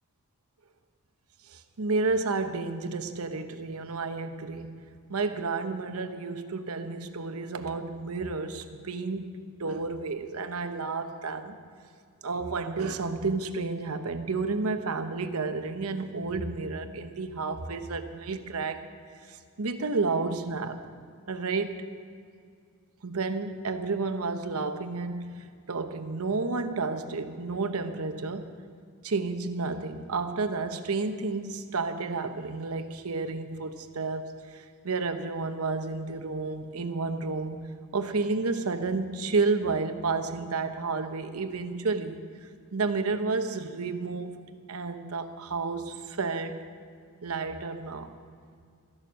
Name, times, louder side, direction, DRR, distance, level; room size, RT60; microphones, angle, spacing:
voice 1, 1.5-4.7 5.1-11.6 12.2-18.8 19.3-20.8 21.3-21.9 23.0-28.5 29.0-37.6 37.9-42.2 42.7-44.4 44.7-46.6 47.2-48.1, right 3 dB, 80° right, 8 dB, 0.9 m, -31 dB
14.0 x 11.5 x 6.3 m, 2.2 s
head